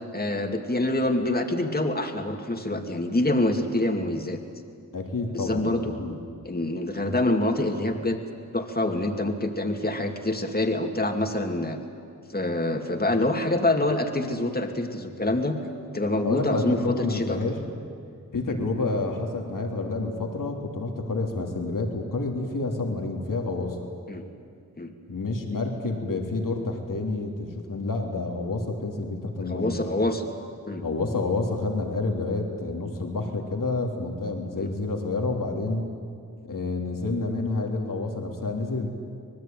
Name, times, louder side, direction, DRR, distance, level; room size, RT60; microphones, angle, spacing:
voice 1, 0.1-4.4 5.3-6.0 6.4-8.2 8.5-11.8 12.3-15.6 15.9-17.4 18.5-18.6 24.1-24.2 24.8-24.9 29.4-30.2 30.7-30.8 34.6-34.7, left 1 dB, 30° left, 4 dB, 2.5 m, -26 dB
voice 2, 4.9-5.7 6.0-6.2 16.2-17.6 18.3-23.9 25.1-29.8 30.8-35.9 36.4-38.9, left 3 dB, 80° left, 2 dB, 3.2 m, -29 dB
25.5 x 19.5 x 9.3 m, 2.3 s
cardioid pair, 40°, 32 cm